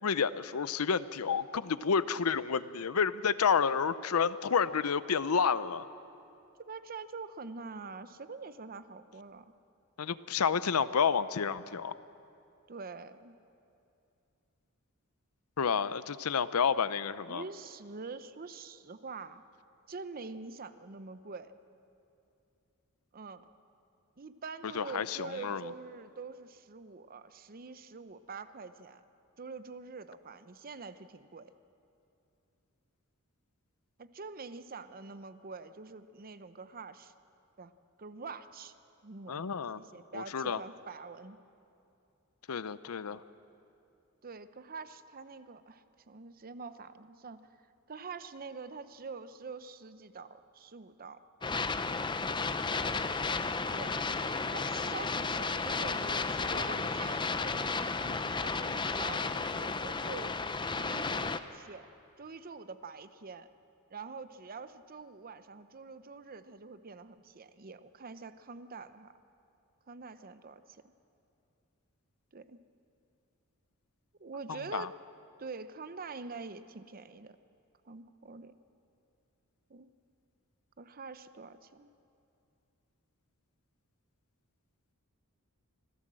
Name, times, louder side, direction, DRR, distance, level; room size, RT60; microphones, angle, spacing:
voice 1, 0.0-5.8 10.0-11.9 15.6-17.4 24.7-25.6 39.3-39.8 40.1-40.6 42.5-43.2 74.5-74.9, left 6 dB, 75° left, 15 dB, 0.6 m, -30 dB
voice 2, 6.6-9.5 12.7-13.4 17.3-19.4 19.9-21.5 23.1-23.4 24.2-29.0 29.4-31.5 34.0-37.1 37.6-37.7 38.0-38.7 39.0-39.4 39.8-41.4 44.2-47.5 47.9-51.2 53.7-54.0 54.5-60.4 60.7-61.9 62.2-63.5 63.9-69.1 69.9-70.8 72.3-72.6 74.2-75.0 75.4-77.4 77.9-78.5 79.7-79.9 80.8-81.9, right 4 dB, 40° right, 12 dB, 0.7 m, -45 dB
sound 1, 51.4-61.4, left 4 dB, 20° left, 0.6 m, -33 dB
25.5 x 16.5 x 7.6 m, 2.7 s
head